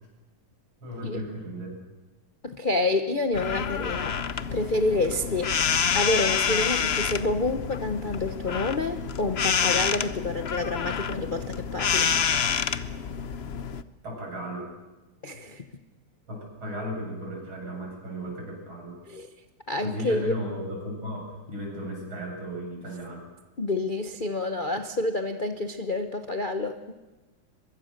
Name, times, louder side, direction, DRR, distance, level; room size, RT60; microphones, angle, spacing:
voice 1, 0.8-1.8 14.0-14.7 16.3-19.0 19.8-23.2, equal, 70° right, -1 dB, 8.7 m, -35 dB
voice 2, 2.4-4.2 4.5-5.5 5.9-12.1 15.2-15.6 19.1-19.3 19.7-20.3 23.6-26.9, left 2 dB, 35° left, 7 dB, 0.8 m, -28 dB
sound 1, 3.3-13.8, left 7 dB, 80° left, 0.5 m, -28 dB
23.5 x 22.5 x 6.7 m, 1.1 s
omnidirectional pair, 2.3 m